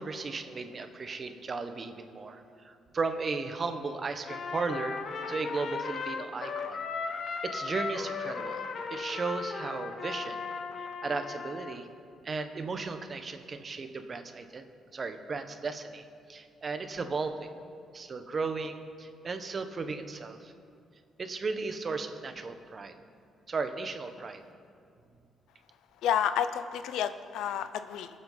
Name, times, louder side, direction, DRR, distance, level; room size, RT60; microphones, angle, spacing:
voice 1, 0.0-5.0 5.3-6.8 7.4-8.6 8.9-10.4 10.8-11.9 12.2-14.6 14.9-17.5 17.9-20.5 21.2-22.9 23.5-24.4, right 4 dB, 40° right, 8 dB, 1.1 m, -35 dB
Trumpet, 4.2-11.8, left 5 dB, 55° left, 1.0 m, -36 dB
voice 2, 26.0-28.1, left 9 dB, 85° left, 11 dB, 0.6 m, -30 dB
23.0 x 7.8 x 4.0 m, 2.3 s
cardioid pair, 90°, 0 cm